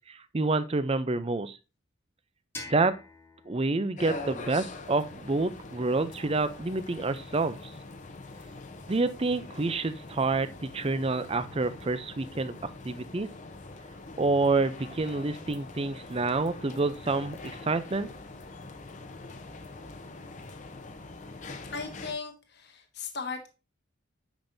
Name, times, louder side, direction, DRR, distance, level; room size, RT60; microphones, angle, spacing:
voice 1, 0.1-1.6 2.7-2.9 3.5-7.7 8.9-12.6 12.8-13.3 14.2-18.1, right 3 dB, 30° right, 13 dB, 0.5 m, -28 dB
sound 1, 2.5-5.4, left 2 dB, 10° left, 1.6 m, -47 dB
sound 2, 4.0-22.1, left 3 dB, 40° left, 0.8 m, -44 dB
voice 2, 21.7-23.5, left 4 dB, 60° left, 5 dB, 1.2 m, -37 dB
8.9 x 5.3 x 2.7 m, 0.30 s
head